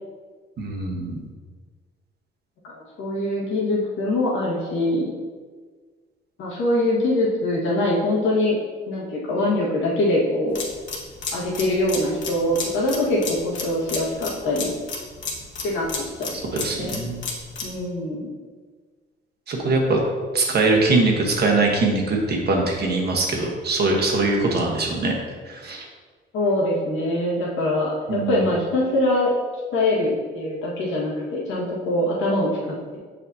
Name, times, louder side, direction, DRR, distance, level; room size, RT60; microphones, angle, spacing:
voice 1, 0.6-1.2 16.5-17.2 19.5-20.0 20.3-25.1 25.5-25.8 28.1-28.4, right 3 dB, 55° right, 0 dB, 1.3 m, -22 dB
voice 2, 2.6-5.1 6.4-8.6 8.9-10.6 11.3-14.7 15.6-15.9 16.2-17.0 17.6-18.3 26.3-29.3 29.7-33.0, left 1 dB, 85° left, -5 dB, 1.8 m, -23 dB
sound 1, 10.5-17.8, left 4 dB, 70° left, 1.2 m, -32 dB
7.0 x 5.0 x 2.8 m, 1.5 s
cardioid pair, 90°, 20 cm